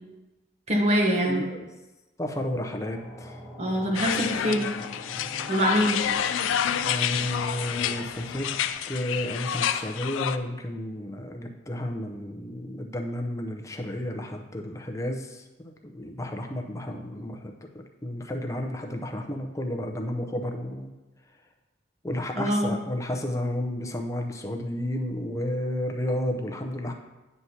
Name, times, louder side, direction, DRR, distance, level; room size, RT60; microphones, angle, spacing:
voice 1, 0.7-1.4 3.6-4.7 5.5-6.0 22.4-22.7, equal, 35° right, 2 dB, 0.9 m, -24 dB
voice 2, 1.2-1.7 2.2-3.4 6.8-8.5 8.9-17.5 18.0-20.9 22.0-26.9, left 1 dB, 15° left, 3 dB, 0.6 m, -32 dB
sound 1, 2.8-8.7, left 1 dB, 10° right, 1.7 m, -43 dB
sound 2, 3.9-10.4, left 9 dB, 80° left, 0.3 m, -29 dB
9.4 x 5.9 x 2.8 m, 1.1 s
head